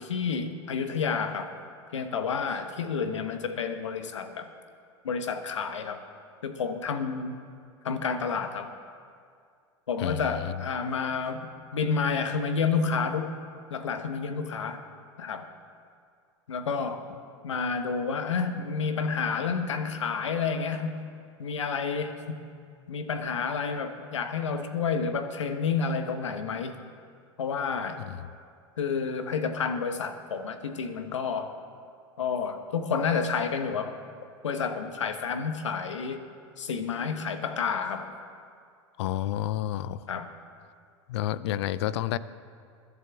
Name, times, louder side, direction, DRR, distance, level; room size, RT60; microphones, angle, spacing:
voice 1, 0.0-1.5 1.9-4.5 5.0-6.0 6.4-7.4 7.8-8.7 9.9-11.5 11.7-13.3 13.7-14.8 15.2-15.5 16.5-17.1 17.4-21.1 21.4-22.4 22.9-26.8 27.4-28.1 28.8-31.5 32.2-34.0 34.4-36.2 36.6-38.1 40.1-40.3, left 5 dB, 85° left, 8 dB, 1.1 m, -30 dB
voice 2, 10.0-10.6 28.0-28.3 39.0-40.1 41.1-42.2, left 12 dB, 65° left, 17 dB, 0.5 m, -30 dB
22.0 x 11.0 x 3.5 m, 2.2 s
hypercardioid pair, 90°, 15 cm